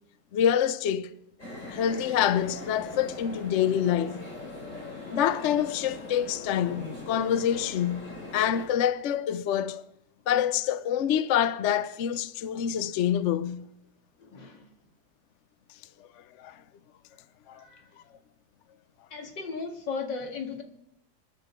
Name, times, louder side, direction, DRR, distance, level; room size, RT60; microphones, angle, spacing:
voice 1, 0.3-1.1 1.7-4.2 5.1-9.8 10.3-13.7 16.4-16.6 17.5-17.6, left 9 dB, 60° left, 0.8 m, -26 dB
sound 1, 1.4-8.7, left 2 dB, 40° left, 4.7 m, -41 dB
voice 2, 14.3-14.6 17.6-17.7 19.1-20.6, left 4 dB, 80° left, 2.7 m, -35 dB
28.0 x 10.0 x 4.5 m
omnidirectional pair, 1.9 m